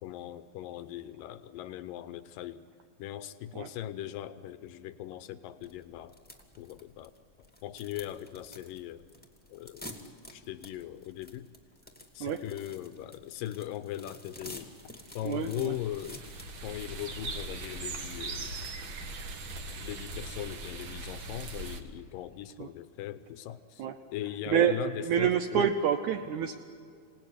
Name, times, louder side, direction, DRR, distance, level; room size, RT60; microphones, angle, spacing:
voice 1, 0.0-2.7 3.0-6.2 6.6-7.1 7.4-9.1 9.5-9.9 10.3-11.5 12.1-14.7 15.1-16.2 16.6-18.5 19.8-23.9 24.1-25.7, left 12 dB, 75° left, 13 dB, 2.2 m, -39 dB
sound 1, 5.6-20.5, left 1 dB, 5° left, 0.9 m, -50 dB
sound 2, 14.7-21.8, right 3 dB, 65° right, 1.2 m, -40 dB
voice 2, 15.2-15.7 22.6-22.7 23.8-23.9 24.5-24.8 25.0-26.6, right 9 dB, 80° right, 7 dB, 1.7 m, -27 dB
27.0 x 18.5 x 9.8 m, 2.3 s
omnidirectional pair, 4.6 m